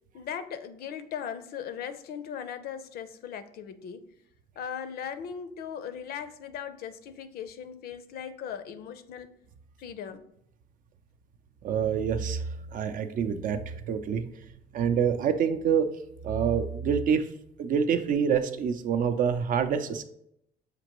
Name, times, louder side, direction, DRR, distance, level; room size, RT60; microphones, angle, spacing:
voice 1, 0.1-4.0 4.6-9.3 9.8-10.3, left 8 dB, 65° left, 11 dB, 0.5 m, -38 dB
voice 2, 11.6-12.4 12.7-14.3 14.7-15.9 16.2-17.3 17.6-20.0, right 7 dB, 55° right, 8 dB, 0.5 m, -26 dB
6.6 x 2.5 x 2.9 m, 0.76 s
cardioid pair, 110°, 17 cm